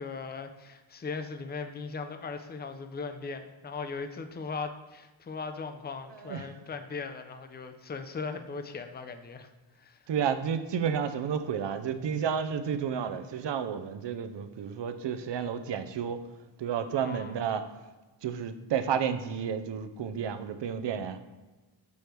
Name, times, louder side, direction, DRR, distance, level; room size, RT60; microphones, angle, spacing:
voice 1, 0.0-9.5 9.8-10.0 17.0-17.3, left 4 dB, 20° left, 8 dB, 0.5 m, -38 dB
voice 2, 6.1-6.6 10.1-16.2 16.6-17.7 18.2-21.2, right 7 dB, 60° right, 9 dB, 0.6 m, -31 dB
7.0 x 3.2 x 4.4 m, 1.2 s
cardioid pair, 85°, 48 cm